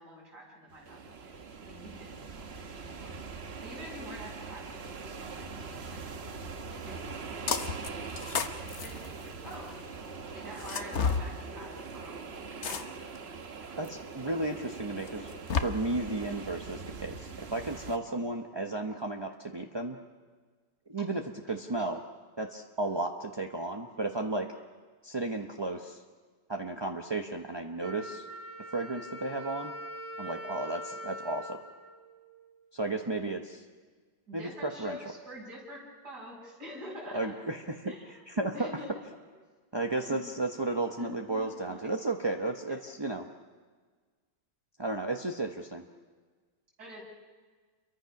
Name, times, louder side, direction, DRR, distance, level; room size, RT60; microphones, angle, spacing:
voice 1, 0.0-3.1 3.6-6.1 6.8-7.2 8.5-9.8 10.3-13.5 18.0-18.2 18.9-19.0 21.0-21.1 21.8-21.9 34.3-37.5 37.8-38.2 38.5-38.9 39.7-40.2 41.0-41.9 42.7-42.8 46.8-47.0, equal, 55° right, -3 dB, 6.9 m, -47 dB
sound 1, 0.7-18.0, right 4 dB, 40° right, 1.1 m, -42 dB
sound 2, 7.5-7.9 8.2-9.7 10.6-11.2 12.6-13.2 13.8-13.9 15.1-15.6, left 6 dB, 45° left, 1.0 m, -31 dB
voice 2, 13.8-15.3 15.6-20.0 20.9-21.2 21.5-22.0 22.4-24.5 25.0-26.0 26.5-28.3 28.7-29.7 30.2-31.6 32.7-33.6 34.3-35.0 37.1-37.9 38.3-38.7 39.7-43.3 44.8-45.8, right 2 dB, 25° right, 2 dB, 0.6 m, -33 dB
Wind instrument woodwind instrument, 27.8-32.6, equal, 85° right, 3.7 m, -43 dB
29.0 x 23.0 x 6.0 m, 1.5 s
omnidirectional pair, 2.0 m